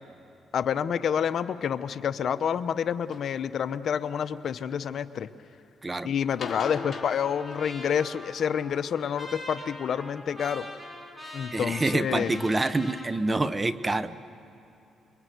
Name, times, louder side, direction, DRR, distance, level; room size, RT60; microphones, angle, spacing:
voice 1, 0.5-5.3 6.0-10.7 11.3-12.4, left 8 dB, 60° left, 12 dB, 0.8 m, -28 dB
sound 1, 3.1-3.3 4.0-4.7 6.2-8.2 9.8-10.3 11.0-11.1 11.7-11.8 12.2-12.3 12.4-12.5, left 5 dB, 35° left, 3.0 m, -41 dB
Trumpet, 6.3-13.1, left 1 dB, 5° right, 5.3 m, -43 dB
voice 2, 11.5-14.2, right 2 dB, 20° right, 14 dB, 0.9 m, -27 dB
27.0 x 23.0 x 9.3 m, 2.9 s
cardioid pair, 90°, 0 cm